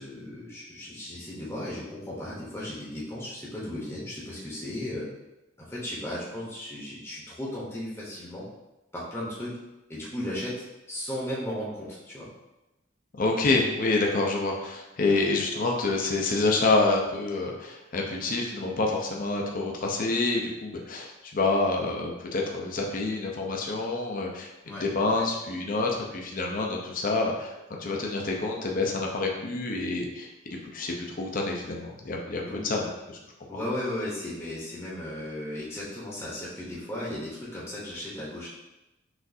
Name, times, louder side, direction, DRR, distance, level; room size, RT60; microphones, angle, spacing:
voice 1, 0.0-5.1 5.6-8.5 8.9-9.5 9.9-10.5 10.9-12.3 24.6-24.8 25.1-25.2 32.5-32.7 33.5-38.5, left 1 dB, 15° left, -7 dB, 0.9 m, -35 dB
voice 2, 13.2-33.2 33.5-33.6, left 3 dB, 45° left, 0 dB, 0.6 m, -27 dB
6.1 x 2.5 x 2.6 m, 0.99 s
head